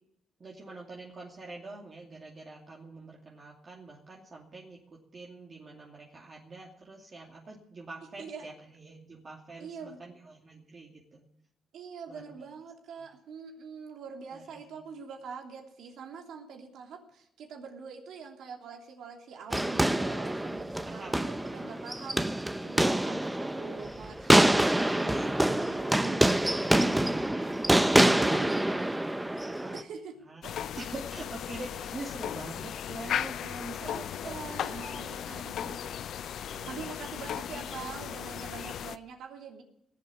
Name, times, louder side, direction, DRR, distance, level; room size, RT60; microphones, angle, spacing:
voice 1, 0.4-11.2 12.1-12.5 12.9-13.1 14.3-14.4 14.7-14.8 20.8-21.5 24.9-25.7 26.1-26.4 27.3-28.2 28.9-29.8 30.3-35.9 36.2-36.9 37.3-38.1, right 3 dB, 40° right, -2 dB, 2.6 m, -46 dB
voice 2, 9.6-10.0 11.7-28.9 29.3-29.5 29.7-30.5 33.8-35.8 36.7-39.6, right 5 dB, 75° right, 2 dB, 3.1 m, -45 dB
sound 1, 19.5-29.8, right 1 dB, 10° right, 0.7 m, -26 dB
sound 2, 30.4-39.0, left 9 dB, 70° left, 0.6 m, -36 dB
18.5 x 8.0 x 8.3 m, 0.75 s
cardioid pair, 90°, 0 cm